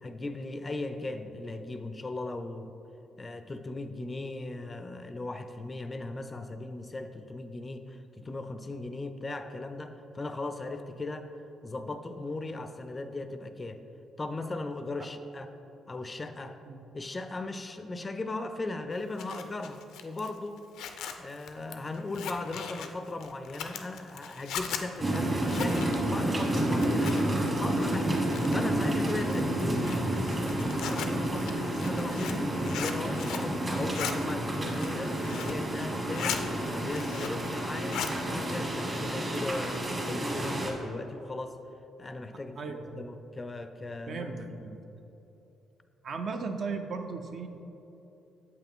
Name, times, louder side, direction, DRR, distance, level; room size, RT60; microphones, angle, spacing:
voice 1, 0.0-2.8 3.2-11.3 11.6-13.8 14.2-15.5 15.9-16.6 16.9-20.6 21.2-27.2 27.6-28.2 28.5-41.6 42.0-44.4, left 2 dB, 25° left, 8 dB, 0.4 m, -38 dB
Zipper (clothing), 18.9-27.5 27.8-28.7 29.2-33.5 33.8-34.1 34.6-35.6 35.9-36.4 36.8-37.5 37.7-38.2, left 7 dB, 85° left, 0.5 m, -38 dB
sound 1, 25.0-40.7, right 1 dB, 30° right, 1.3 m, -30 dB
voice 2, 42.6-43.0 44.1-44.8 46.0-47.5, right 4 dB, 55° right, 5 dB, 0.6 m, -36 dB
7.6 x 5.7 x 3.6 m, 3.0 s
cardioid pair, 90°, 0 cm